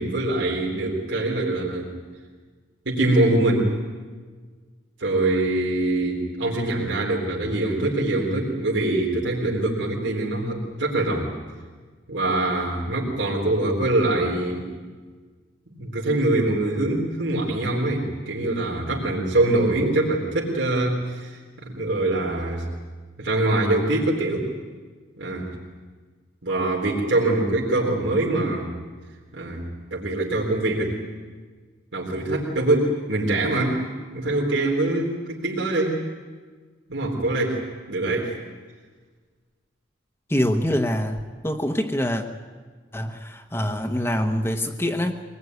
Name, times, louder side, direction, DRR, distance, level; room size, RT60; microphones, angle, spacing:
voice 1, 0.0-1.9 2.9-3.7 5.0-11.3 12.1-14.7 15.7-22.7 23.2-24.5 25.2-25.5 26.4-28.7 29.3-29.6 29.9-31.0 31.9-33.9 34.1-36.0 36.9-37.6 37.9-38.4, right 2 dB, 80° right, -2 dB, 3.9 m, -23 dB
voice 2, 40.3-42.2 42.9-45.2, equal, 15° left, 4 dB, 1.0 m, -25 dB
24.0 x 20.5 x 9.5 m, 1.5 s
head